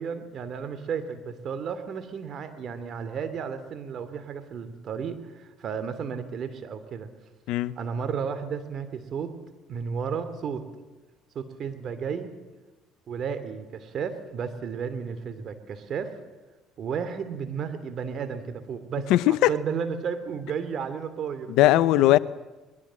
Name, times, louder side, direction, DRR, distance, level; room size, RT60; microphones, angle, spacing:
voice 1, 0.0-7.1 7.8-9.3 9.7-10.7 11.3-12.3 13.1-16.1 16.8-19.1 19.5-22.2, right 6 dB, 55° right, 2.9 m, -33 dB
voice 2, 19.1-19.5 21.5-22.2, left 16 dB, 75° left, 0.7 m, -19 dB
22.0 x 21.0 x 7.6 m
supercardioid pair, 70°, 0 cm